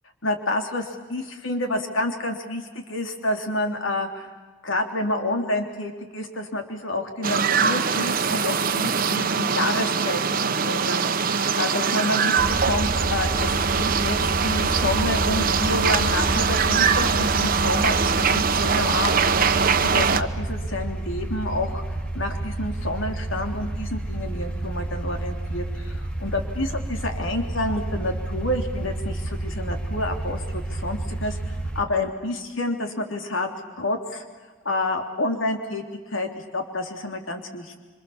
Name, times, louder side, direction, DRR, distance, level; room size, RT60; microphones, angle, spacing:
voice 1, 0.2-4.3 4.6-12.3 12.6-14.2 14.4-21.8 22.1-33.5 33.8-34.2 34.6-37.8, left 1 dB, 85° left, 4 dB, 3.2 m, -29 dB
sound 1, 7.2-20.2, right 6 dB, 50° right, 1.0 m, -22 dB
sound 2, 12.4-31.8, right 1 dB, 5° left, 2.4 m, -30 dB
27.0 x 25.0 x 7.3 m, 1.4 s
head